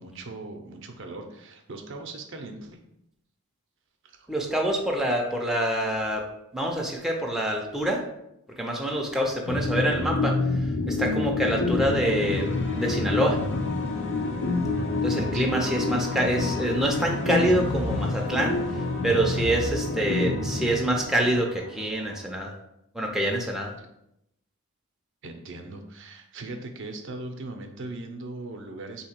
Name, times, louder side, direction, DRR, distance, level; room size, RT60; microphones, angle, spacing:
voice 1, 0.0-2.8 4.0-4.3 15.3-15.6 23.8-23.9 25.2-29.0, right 2 dB, 55° right, 4 dB, 0.6 m, -39 dB
voice 2, 4.3-6.2 6.5-8.0 8.6-13.4 15.0-22.5 22.9-23.7, right 1 dB, ahead, -1 dB, 0.4 m, -26 dB
sound 1, 9.5-21.3, left 3 dB, 85° left, 0.8 m, -28 dB
sound 2, 11.2-22.3, left 3 dB, 55° left, 0.8 m, -39 dB
3.9 x 2.8 x 4.3 m, 0.80 s
head